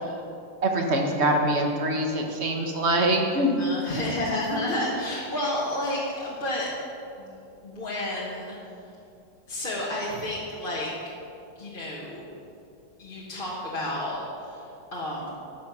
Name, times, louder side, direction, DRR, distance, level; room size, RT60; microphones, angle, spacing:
voice 1, 0.6-3.7, right 1 dB, 40° right, 2 dB, 1.4 m, -24 dB
voice 2, 3.6-6.7 7.2-7.4 7.6-8.6 9.5-10.9 11.5-12.2 13.0-15.3, left 1 dB, 30° left, -7 dB, 1.7 m, -31 dB
12.0 x 7.3 x 6.1 m, 2.6 s
omnidirectional pair, 2.0 m